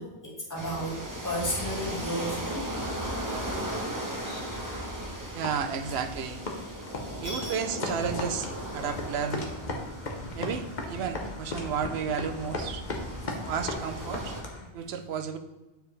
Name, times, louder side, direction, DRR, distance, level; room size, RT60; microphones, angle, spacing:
voice 1, 0.0-2.8 3.5-3.7 4.2-4.7 7.2-7.5, equal, 15° left, -4 dB, 1.7 m, -34 dB
sound 1, 0.5-14.4, right 1 dB, 20° right, 1.0 m, -37 dB
voice 2, 5.3-6.4 7.2-9.5 10.3-12.8 13.5-14.3 14.7-15.4, right 7 dB, 80° right, 9 dB, 0.9 m, -32 dB
sound 2, 5.4-14.7, left 2 dB, 45° left, 1.1 m, -37 dB
9.0 x 4.8 x 3.2 m, 1.0 s
omnidirectional pair, 1.1 m